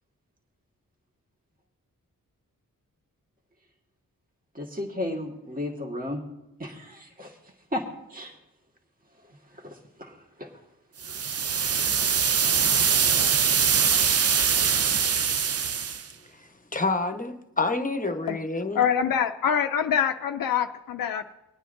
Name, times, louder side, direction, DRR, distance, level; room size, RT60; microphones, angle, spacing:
voice 1, 4.6-6.2 6.6-7.4 7.7-7.8 8.1-8.3 9.5-10.5 11.1-11.2, left 1 dB, 25° right, 1 dB, 1.6 m, -34 dB
sound 1, 11.0-16.0, right 7 dB, 45° right, 0.5 m, -23 dB
voice 2, 16.3-18.8, left 3 dB, 25° left, 7 dB, 1.0 m, -28 dB
voice 3, 18.7-21.4, left 8 dB, 90° left, 6 dB, 0.5 m, -25 dB
25.0 x 9.1 x 2.6 m, 0.94 s
wide cardioid pair, 80°, 34 cm